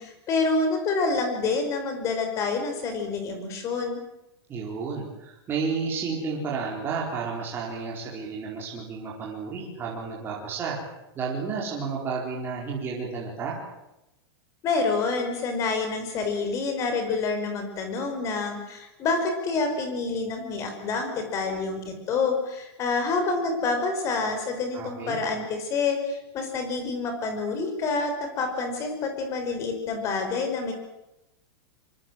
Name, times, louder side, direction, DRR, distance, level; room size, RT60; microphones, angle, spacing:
voice 1, 0.0-4.0 14.6-30.7, left 4 dB, 20° left, 5 dB, 5.3 m, -27 dB
voice 2, 4.5-10.8 11.1-13.6 24.7-25.2, right 5 dB, 15° right, -3 dB, 4.5 m, -31 dB
25.0 x 24.5 x 7.8 m, 0.92 s
supercardioid pair, 175°, 13 cm